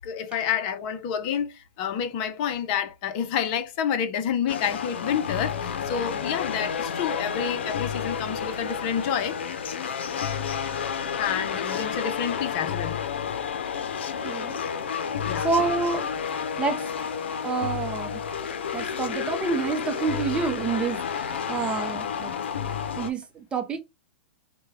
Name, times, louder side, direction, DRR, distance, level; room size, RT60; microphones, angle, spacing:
voice 1, 0.0-9.4 11.2-13.0 15.3-15.5, left 8 dB, 45° left, 0.7 m, -29 dB
sound 1, 4.5-23.1, left 7 dB, 80° left, 0.6 m, -30 dB
voice 2, 14.2-14.6 15.4-16.8 17.4-18.2 18.7-22.3 23.0-23.8, right 5 dB, 15° right, 0.6 m, -28 dB
4.4 x 2.2 x 3.4 m
hypercardioid pair, 135°, 6 cm